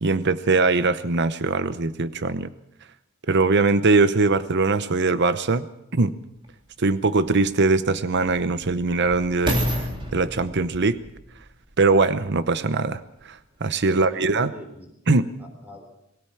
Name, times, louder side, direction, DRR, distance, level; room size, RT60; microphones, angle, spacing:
voice 1, 0.0-2.5 3.3-5.7 5.9-6.1 6.8-11.0 11.8-14.5 15.1-15.2, right 3 dB, 55° right, 13 dB, 0.8 m, -21 dB
sound 1, 6.4-6.5 7.3-12.6 13.2-13.3, equal, 25° right, 3.4 m, -31 dB
voice 2, 13.7-14.9 15.4-15.9, equal, 10° right, 4 dB, 3.8 m, -43 dB
23.0 x 16.5 x 7.2 m, 0.80 s
head